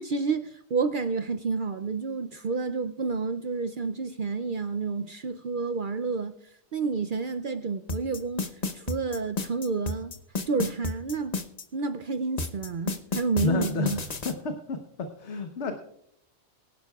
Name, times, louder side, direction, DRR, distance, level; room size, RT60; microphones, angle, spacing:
voice 1, 0.0-6.3 6.7-8.5 8.7-10.1 10.5-11.4 11.7-14.0, right 4 dB, 55° right, 0.6 m, -29 dB
sound 1, 7.9-11.6 12.4-14.3, left 3 dB, 35° left, 0.9 m, -31 dB
voice 2, 13.4-15.8, left 4 dB, 60° left, 1.3 m, -31 dB
22.5 x 11.0 x 2.3 m
omnidirectional pair, 1.4 m